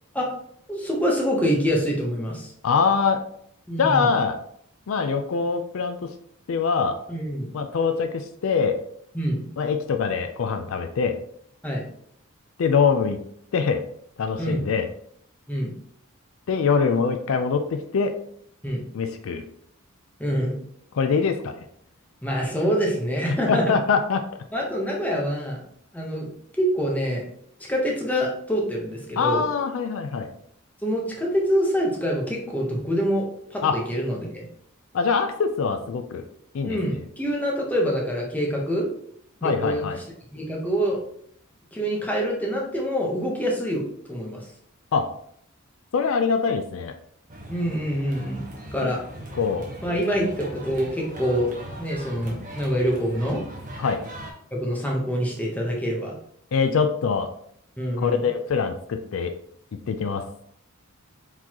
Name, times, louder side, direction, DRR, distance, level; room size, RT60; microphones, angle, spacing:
voice 1, 0.7-2.5 3.7-4.1 7.1-7.5 9.1-9.5 11.6-11.8 14.4-14.7 15.5-15.7 18.6-18.9 20.2-20.6 22.2-23.8 24.5-25.6 25.9-26.3 26.6-27.2 27.7-29.4 30.8-33.2 33.5-34.5 36.6-38.9 39.4-39.8 40.3-41.0 41.7-43.8 44.1-44.4 47.5-49.0 49.8-51.5 51.8-53.4 54.5-56.1 57.8-58.2, equal, 5° left, -2 dB, 0.9 m, -25 dB
voice 2, 2.6-3.2 3.8-4.3 4.9-6.1 6.5-7.0 7.5-8.8 9.6-11.2 12.6-13.2 13.5-13.8 14.2-14.9 16.5-18.1 18.9-19.4 20.9-21.6 23.5-24.2 29.2-30.3 33.6-33.8 34.9-36.2 36.5-36.8 39.4-40.0 44.9-45.1 45.9-46.9 48.8-48.9 49.3-49.7 53.8-54.0 56.5-57.3 58.0-59.3 59.7-60.2, left 5 dB, 65° left, 7 dB, 0.4 m, -23 dB
sound 1, 47.3-54.3, right 1 dB, 40° right, 1.1 m, -40 dB
4.6 x 3.9 x 2.9 m, 0.68 s
head